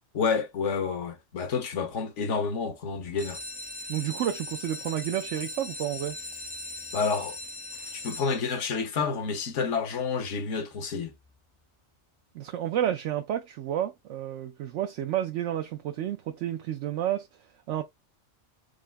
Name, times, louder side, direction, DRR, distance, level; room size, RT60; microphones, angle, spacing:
voice 1, 0.1-3.4 6.9-7.4 7.9-11.1, left 5 dB, 75° left, 1.4 m, -29 dB
sound 1, 3.2-8.8 9.4-9.9 10.3-10.4 10.6-10.7 11.2-11.3, left 2 dB, 10° right, 0.6 m, -39 dB
voice 2, 3.9-6.2 12.3-17.3 17.7-17.8, right 11 dB, 75° right, 0.9 m, -30 dB
4.9 x 2.1 x 3.4 m
omnidirectional pair, 1.3 m